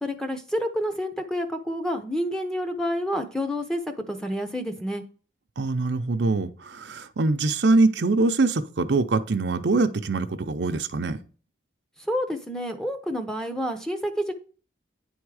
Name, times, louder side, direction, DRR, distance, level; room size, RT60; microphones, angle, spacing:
voice 1, 0.0-5.0 12.0-14.3, equal, 5° left, 3 dB, 0.7 m, -29 dB
voice 2, 5.6-11.2, right 3 dB, 75° right, 8 dB, 0.6 m, -23 dB
9.5 x 3.6 x 4.8 m, 0.39 s
head